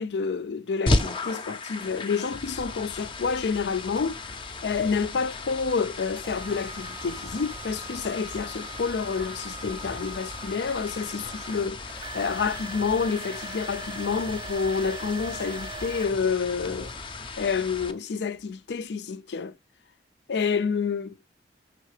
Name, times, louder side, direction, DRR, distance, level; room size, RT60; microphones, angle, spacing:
voice 1, 0.0-4.2 4.6-16.9 17.4-19.5 20.3-21.2, left 5 dB, 75° left, 0.4 m, -28 dB
sound 1, 0.9-17.9, left 2 dB, 30° left, 0.5 m, -35 dB
sound 2, 4.0-4.1 4.8-5.0 6.2-17.0 17.6-17.7 18.3-18.4, right 4 dB, 25° right, 0.3 m, -42 dB
5.7 x 3.6 x 4.8 m
head